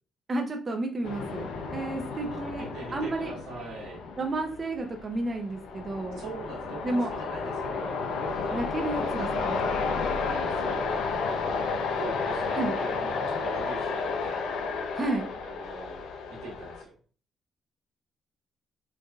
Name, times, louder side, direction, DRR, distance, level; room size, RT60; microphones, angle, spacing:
voice 1, 0.3-1.5 1.7-3.3 4.2-6.2 6.8-7.1 8.5-9.3 12.5-12.7 14.9-15.3, right 2 dB, 35° right, 3 dB, 0.6 m, -31 dB
sound 1, 1.0-16.8, left 4 dB, 85° left, 0.5 m, -32 dB
voice 2, 2.1-4.0 6.2-8.0 8.3-9.6 9.9-10.9 12.0-14.4 15.4-16.0 16.3-17.0, right 3 dB, 90° right, -2 dB, 1.3 m, -42 dB
4.6 x 2.5 x 2.3 m, 0.41 s
cardioid pair, 90°, 0 cm